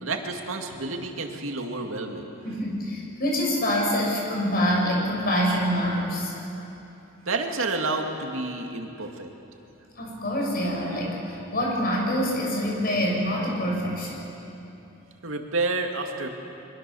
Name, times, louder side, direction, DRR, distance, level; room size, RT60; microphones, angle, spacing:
voice 1, 0.0-2.3 7.3-9.3 15.2-16.3, right 3 dB, 85° right, 3 dB, 2.2 m, -29 dB
voice 2, 2.4-6.3 10.0-14.1, equal, 50° left, -1 dB, 6.2 m, -25 dB
24.0 x 22.5 x 7.0 m, 2.9 s
head